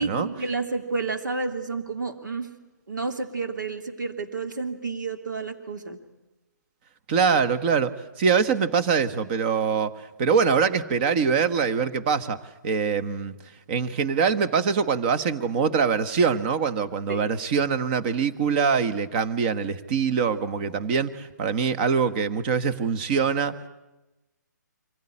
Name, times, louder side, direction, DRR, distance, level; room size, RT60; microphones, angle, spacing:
voice 1, 0.0-2.5 2.9-6.0 17.1-17.2, right 3 dB, 85° right, 6 dB, 2.8 m, -30 dB
voice 2, 7.1-7.9 8.2-9.9 10.2-12.4 12.6-13.3 13.7-23.7, right 6 dB, 30° right, 15 dB, 1.2 m, -23 dB
25.0 x 16.0 x 9.9 m, 1.1 s
hypercardioid pair, 155°, 10 cm